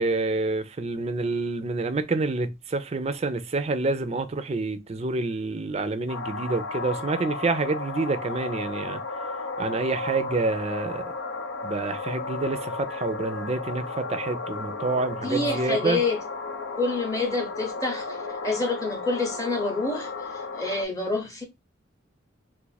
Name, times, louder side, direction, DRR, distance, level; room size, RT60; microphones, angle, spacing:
voice 1, 0.0-9.0 9.6-11.0 11.6-16.0, right 3 dB, 35° right, 0.4 m, -28 dB
sound 1, 6.1-20.8, left 3 dB, 85° left, 0.6 m, -34 dB
voice 2, 15.2-16.2 16.7-18.2 18.4-21.4, left 3 dB, 15° left, 0.7 m, -27 dB
2.5 x 2.4 x 3.9 m
head